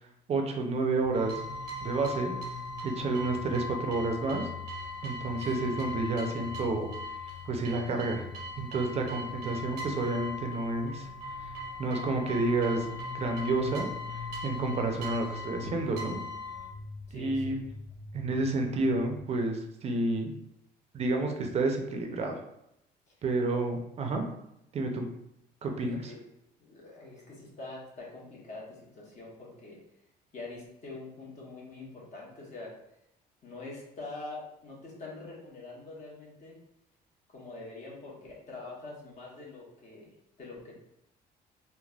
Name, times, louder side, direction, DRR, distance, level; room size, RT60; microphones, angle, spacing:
voice 1, 0.3-1.4 1.8-2.3 2.8-4.5 5.0-6.9 7.4-8.3 8.6-11.1 11.4-11.5 11.8-12.9 13.1-13.9 14.1-16.2 17.1-17.6 18.1-20.3 20.9-22.4 23.2-24.2 24.7-25.1 25.6-26.1, right 2 dB, 40° right, 3 dB, 0.5 m, -30 dB
sound 1, 1.0-19.2, left 3 dB, 60° left, 0.5 m, -45 dB
Chion-in Temple Kyoto, 1.1-16.7, left 1 dB, 80° right, 0.7 m, -40 dB
voice 2, 17.1-17.5 25.8-26.2 26.6-29.8 30.3-32.7 33.4-36.6 37.3-40.1 40.4-40.7, left 3 dB, 45° left, -4 dB, 1.0 m, -44 dB
3.2 x 2.1 x 2.3 m, 0.80 s
cardioid pair, 110°, 17 cm